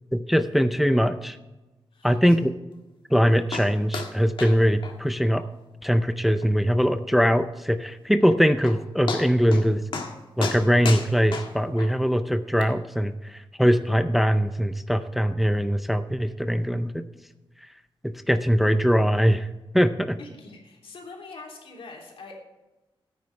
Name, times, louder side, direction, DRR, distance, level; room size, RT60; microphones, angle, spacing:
voice 1, 0.1-1.4 2.0-2.5 3.1-5.4 5.8-9.8 10.4-17.0 18.0-19.5 19.7-20.2, equal, ahead, 10 dB, 0.5 m, -22 dB
voice 2, 1.9-2.4 20.2-22.4, left 3 dB, 90° left, -1 dB, 3.2 m, -44 dB
sound 1, 3.5-3.7 3.9-4.1 4.4-4.6 4.8-4.9 5.4-5.5 5.9-6.0 6.4-6.5 8.2-8.3 8.6-8.8 9.1-9.7 9.9-10.1 10.4-11.9 12.6-12.7, left 4 dB, 65° left, 1.6 m, -31 dB
14.5 x 9.4 x 3.3 m, 1.1 s
wide cardioid pair, 150°, 9 cm